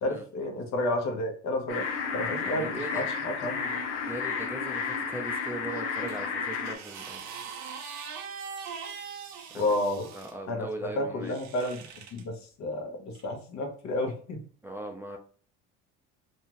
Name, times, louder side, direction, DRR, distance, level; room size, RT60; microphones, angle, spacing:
voice 1, 0.0-3.8 9.5-10.1 10.5-10.7 11.0-11.8 12.1-14.4, left 1 dB, 55° left, 3 dB, 1.0 m, -31 dB
sound 1, 1.7-6.8, left 5 dB, 75° left, 0.8 m, -32 dB
voice 2, 2.3-3.1 4.1-7.2 9.5-9.8 10.1-11.4 14.6-15.2, right 1 dB, 5° right, 2 dB, 0.5 m, -39 dB
sound 2, 6.1-10.3 11.2-12.2 13.1-13.3, right 6 dB, 55° right, 0.7 m, -42 dB
2.7 x 2.4 x 3.0 m, 0.43 s
hypercardioid pair, 75°, 34 cm